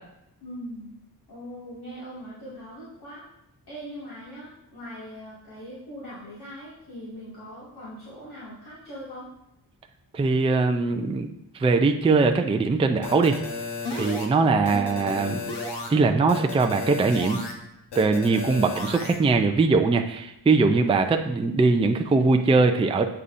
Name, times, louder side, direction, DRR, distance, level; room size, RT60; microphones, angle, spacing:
voice 1, 0.4-0.9 1.3-3.2 3.7-9.3 14.6-14.9, equal, 70° left, -10 dB, 2.1 m, -40 dB
voice 2, 10.1-11.3 11.5-13.4 13.9-15.4 15.9-17.4 18.0-23.1, right 3 dB, 15° right, 5 dB, 0.3 m, -21 dB
sound 1, 13.0-14.3 14.7-15.9 16.3-17.5 17.9-19.2, left 3 dB, 90° left, 1.1 m, -33 dB
8.2 x 5.5 x 2.5 m, 0.83 s
wide cardioid pair, 150°, 40 cm